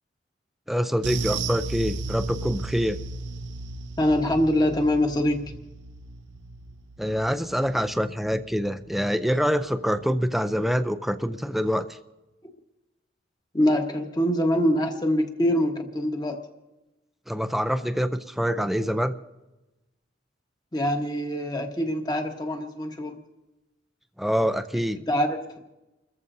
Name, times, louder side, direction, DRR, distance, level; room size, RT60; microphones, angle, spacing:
voice 1, 0.7-3.0 7.0-11.9 17.3-19.2 24.2-25.0, equal, ahead, 9 dB, 0.5 m, -25 dB
sound 1, 1.0-9.7 10.0-10.2 10.6-10.7, right 3 dB, 75° right, 0.7 m, -35 dB
voice 2, 4.0-5.5 13.5-16.4 20.7-23.2 25.1-25.6, equal, 20° left, 4 dB, 1.3 m, -24 dB
30.0 x 14.0 x 2.7 m, 1.1 s
head